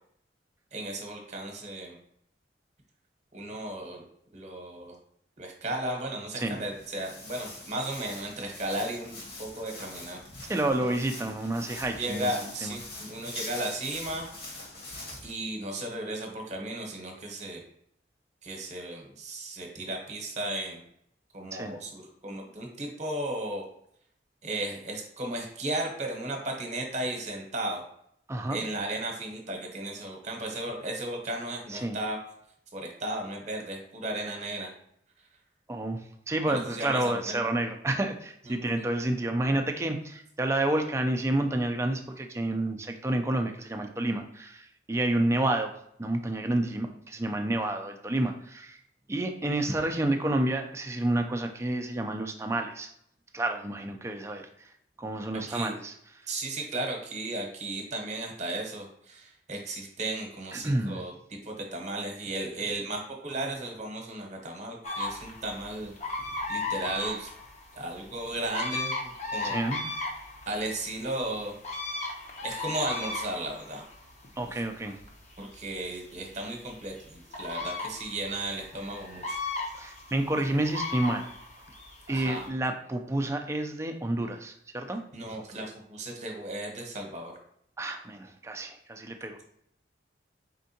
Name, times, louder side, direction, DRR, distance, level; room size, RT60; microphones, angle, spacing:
voice 1, 0.7-2.0 3.3-4.1 4.3-4.9 5.4-10.5 12.0-14.3 15.2-17.6 18.4-20.8 21.3-23.6 24.4-27.8 28.5-32.2 32.7-34.7 36.5-37.4 38.5-38.8 55.4-55.7 56.3-61.1 61.4-65.9 66.5-67.3 67.8-69.6 70.5-71.5 72.4-73.9 74.4-74.6 75.4-79.4 82.1-82.5 85.1-87.3, right 1 dB, 40° right, 2 dB, 0.9 m, -35 dB
Walk footsteps, 6.6-15.3, left 2 dB, 55° left, 1.4 m, -43 dB
voice 2, 10.5-12.8 21.5-21.7 28.3-28.6 31.7-32.0 35.7-45.7 46.0-48.8 49.1-52.9 53.3-54.4 55.0-55.9 60.5-61.0 69.4-69.8 74.4-75.0 79.8-81.2 82.1-85.0 87.8-89.4, right 1 dB, 15° right, 5 dB, 0.4 m, -29 dB
sound 1, 64.8-82.5, left 3 dB, 40° left, 0.7 m, -37 dB
4.3 x 3.6 x 2.7 m, 0.72 s
head